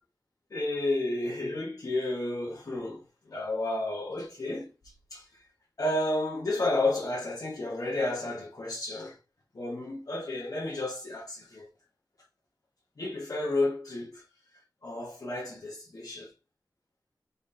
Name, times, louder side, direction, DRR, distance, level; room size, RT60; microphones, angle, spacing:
voice 1, 0.5-5.4 5.8-9.2 9.5-11.7 13.0-14.1 14.8-16.3, left 2 dB, 60° left, 1.0 m, -32 dB
4.0 x 3.6 x 2.6 m
cardioid pair, 40°, 7 cm